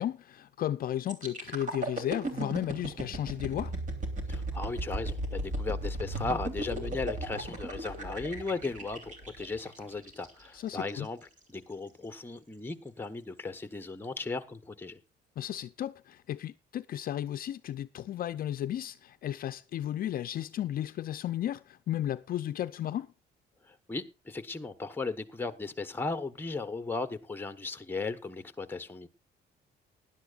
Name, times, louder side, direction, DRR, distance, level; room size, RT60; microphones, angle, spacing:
voice 1, 0.0-3.8 10.5-11.1 15.4-23.1, left 11 dB, 55° left, 0.5 m, -34 dB
sound 1, 1.1-10.9 11.4-11.6, right 1 dB, 45° right, 3.2 m, -36 dB
voice 2, 4.3-11.2 11.5-15.0 23.7-29.1, left 3 dB, 10° left, 1.1 m, -36 dB
19.0 x 11.0 x 2.4 m
cardioid pair, 135°, 18 cm